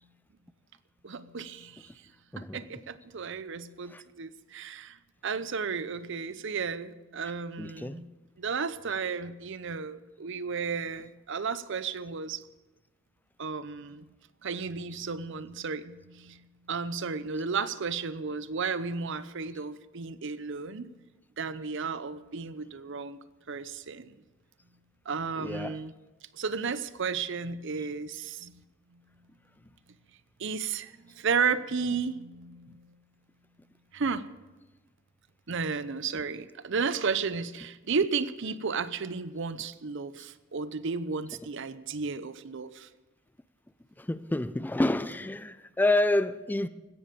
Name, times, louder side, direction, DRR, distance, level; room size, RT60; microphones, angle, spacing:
voice 1, 1.0-1.9 2.4-5.0 5.2-8.1 8.4-12.4 13.4-14.0 14.4-20.9 21.4-23.2 23.5-24.2 25.1-25.9 26.3-28.6 28.9-29.0 30.4-33.0 33.9-34.3 35.5-42.9, right 5 dB, 65° right, 0.7 m, -33 dB
voice 2, 7.6-8.0 25.4-25.8 44.0-46.7, left 2 dB, 10° left, 0.4 m, -28 dB
16.5 x 13.5 x 5.2 m
head